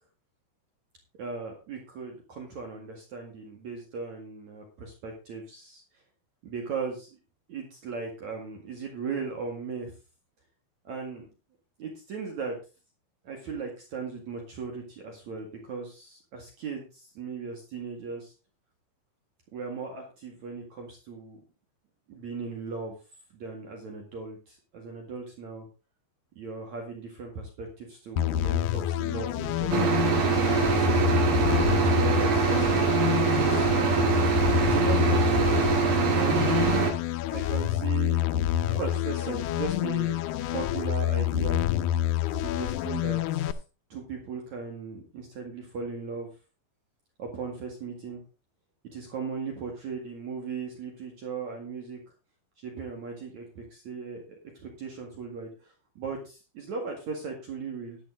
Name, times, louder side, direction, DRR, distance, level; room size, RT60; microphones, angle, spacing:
voice 1, 1.2-5.8 6.4-7.1 7.5-9.9 10.8-11.3 11.8-12.6 13.2-18.3 19.5-21.4 22.1-23.0 23.3-25.7 26.4-30.0 30.7-31.3 31.6-32.8 33.1-34.4 34.7-35.5 36.1-36.8 37.3-38.2 38.6-40.2 40.5-41.6 42.3-43.6 43.9-46.3 47.2-48.2 48.9-52.0 52.6-58.0, right 5 dB, 55° right, 1 dB, 3.1 m, -37 dB
sound 1, 28.2-43.5, left 12 dB, 90° left, 1.7 m, -27 dB
sound 2, 29.7-36.9, right 6 dB, 70° right, 4.0 m, -24 dB
11.5 x 10.5 x 3.8 m, 0.31 s
omnidirectional pair, 4.4 m